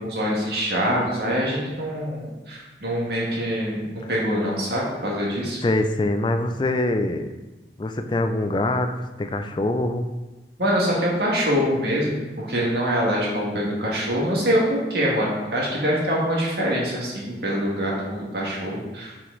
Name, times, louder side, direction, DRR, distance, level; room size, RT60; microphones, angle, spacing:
voice 1, 0.0-5.6 10.6-19.1, equal, 65° right, -4 dB, 1.9 m, -24 dB
voice 2, 5.6-7.3 7.8-10.1, left 2 dB, 25° left, 7 dB, 0.4 m, -24 dB
5.8 x 5.1 x 3.9 m, 1.1 s
head